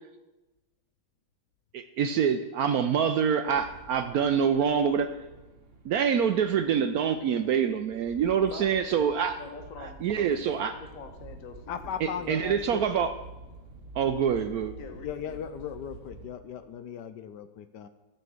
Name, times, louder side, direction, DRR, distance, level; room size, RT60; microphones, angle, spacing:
voice 1, 1.7-5.1 5.8-9.4 9.8-10.7 12.0-13.1 14.0-14.7, right 7 dB, 80° right, 9 dB, 0.8 m, -26 dB
sound 1, 3.4-16.3, right 2 dB, 35° right, 1.2 m, -49 dB
voice 2, 8.5-9.1 9.4-12.3 14.7-15.4, left 4 dB, 45° left, 5 dB, 1.5 m, -45 dB
voice 3, 11.7-13.1 15.0-17.9, left 8 dB, 70° left, 11 dB, 1.1 m, -38 dB
13.0 x 6.0 x 7.8 m, 1.1 s
omnidirectional pair, 2.2 m